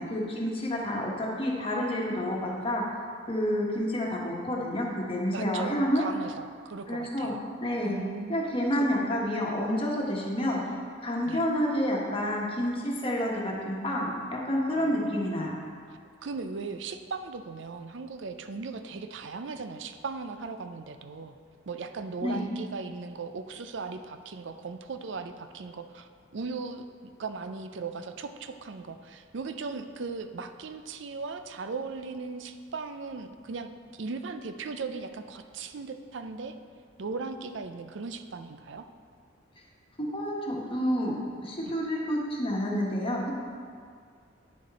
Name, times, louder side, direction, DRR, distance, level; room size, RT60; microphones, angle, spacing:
voice 1, 0.0-3.0 3.3-6.0 6.9-7.3 7.6-8.0 8.3-10.6 11.0-15.6 22.2-22.5 40.0-41.1 41.4-43.3, equal, 30° left, -3 dB, 1.3 m, -29 dB
voice 2, 5.3-7.4 7.8-8.4 8.7-8.9 11.3-11.4 14.7-15.3 16.2-21.4 21.7-26.9 27.2-36.6 37.0-38.9 41.7-41.8, right 4 dB, 65° right, 9 dB, 0.5 m, -38 dB
9.4 x 6.5 x 4.2 m, 2.2 s
head